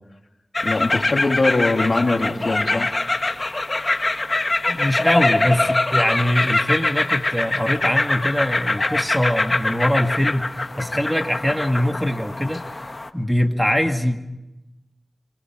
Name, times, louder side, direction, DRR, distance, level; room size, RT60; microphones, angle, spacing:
sound 1, 0.5-13.1, left 2 dB, 45° left, 1.5 m, -23 dB
voice 1, 0.6-2.9, left 3 dB, 65° left, 3 dB, 2.9 m, -21 dB
voice 2, 4.7-12.9 13.1-14.2, equal, ahead, 4 dB, 2.2 m, -22 dB
25.5 x 25.0 x 6.3 m, 0.95 s
cardioid pair, 40°, 0 cm